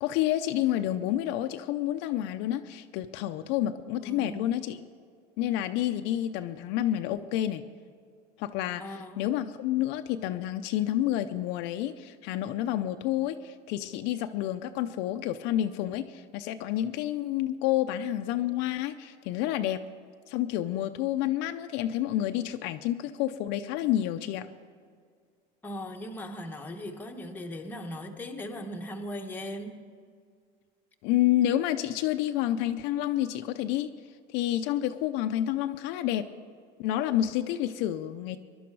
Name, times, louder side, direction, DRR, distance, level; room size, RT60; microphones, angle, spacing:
voice 1, 0.0-4.8 5.4-7.6 8.4-19.8 20.3-24.5 31.0-33.9 34.3-36.3 36.8-38.4, left 12 dB, 60° left, 0.6 m, -29 dB
voice 2, 4.0-4.6 8.8-9.3 25.6-29.8, equal, 10° left, 1.0 m, -39 dB
21.0 x 11.5 x 4.7 m
cardioid pair, 165°, 20 cm